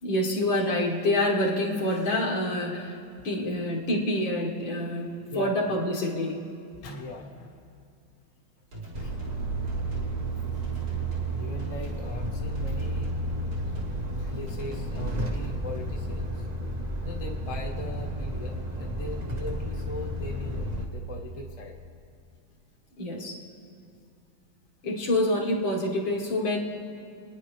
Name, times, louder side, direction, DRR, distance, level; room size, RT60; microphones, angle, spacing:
voice 1, 0.0-3.0 3.2-6.4 23.0-23.4 24.8-26.6, left 1 dB, 75° left, -2 dB, 2.4 m, -27 dB
voice 2, 5.3-5.8 6.7-7.6 9.0-9.2 11.4-13.1 14.2-16.5 17.0-21.8, left 2 dB, 25° left, -1 dB, 0.9 m, -40 dB
sound 1, 8.7-9.4 9.7-10.1 10.6-11.3 11.6-12.0 12.6-13.2 13.5-14.0 14.5-15.3, equal, 80° right, 3.5 m, -44 dB
Truck, 8.9-20.9, right 1 dB, 30° right, 0.8 m, -32 dB
28.0 x 9.9 x 3.3 m, 2.5 s
omnidirectional pair, 2.1 m